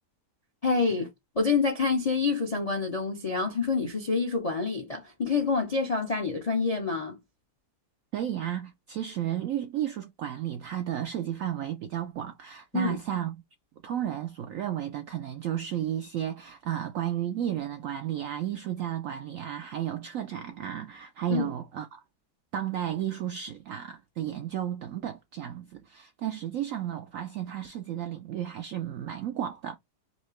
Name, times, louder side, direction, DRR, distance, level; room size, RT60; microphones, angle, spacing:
voice 1, 0.6-1.1 1.4-7.2 12.7-13.0 21.3-21.5, left 4 dB, 45° left, 0.4 m, -27 dB
voice 2, 8.1-13.4 13.8-22.0 22.5-29.8, right 11 dB, 75° right, 0.7 m, -33 dB
4.2 x 2.7 x 3.0 m
omnidirectional pair, 1.9 m